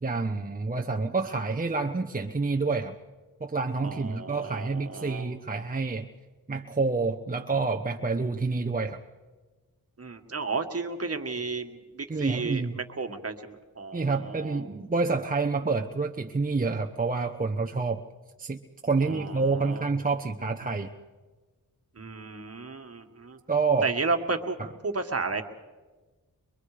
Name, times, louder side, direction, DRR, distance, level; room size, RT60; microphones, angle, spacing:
voice 1, 0.0-3.0 3.4-6.1 6.5-9.0 12.1-12.8 13.9-18.0 18.4-20.9 23.5-23.9 24.6-24.7, right 4 dB, 25° right, 3 dB, 0.9 m, -28 dB
voice 2, 3.8-5.3 10.0-14.6 19.0-19.8 22.0-23.4 23.8-24.6 24.8-25.5, right 4 dB, 40° right, 6 dB, 1.8 m, -33 dB
23.5 x 22.5 x 5.0 m, 1.3 s
cardioid pair, 70°, 35 cm